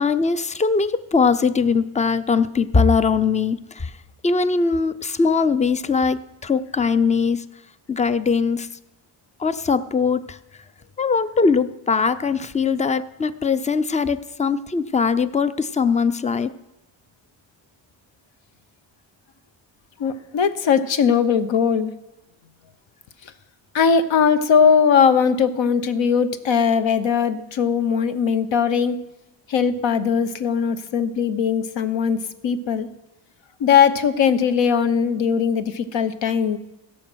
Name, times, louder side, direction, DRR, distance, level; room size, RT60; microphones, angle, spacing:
voice 1, 0.0-3.9 4.2-7.4 7.9-8.7 9.4-10.4 11.0-16.5, left 5 dB, 15° left, 14 dB, 0.4 m, -21 dB
voice 2, 20.0-21.9 23.7-29.0 29.5-32.9 33.6-36.6, left 6 dB, 65° left, 11 dB, 1.0 m, -19 dB
16.5 x 6.7 x 6.2 m, 0.94 s
cardioid pair, 115°, 48 cm